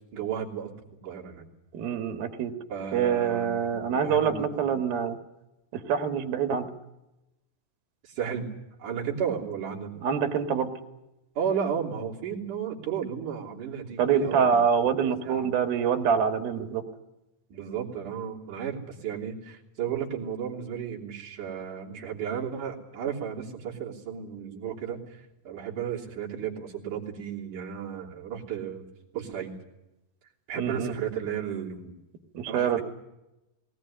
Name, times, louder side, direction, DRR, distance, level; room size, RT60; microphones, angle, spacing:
voice 1, 0.1-0.7 1.0-1.5 2.7-4.7 8.0-8.5 8.8-10.0 11.4-14.6 15.0-15.5 17.5-28.9 29.1-29.5 30.5-32.0 32.5-32.8, right 7 dB, 60° right, -2 dB, 4.7 m, -34 dB
voice 2, 1.7-2.5 2.9-5.2 5.7-6.7 10.0-10.7 14.0-16.8 30.6-30.9 32.4-32.8, right 7 dB, 85° right, 8 dB, 3.5 m, -25 dB
19.5 x 19.0 x 10.0 m, 0.96 s
omnidirectional pair, 4.1 m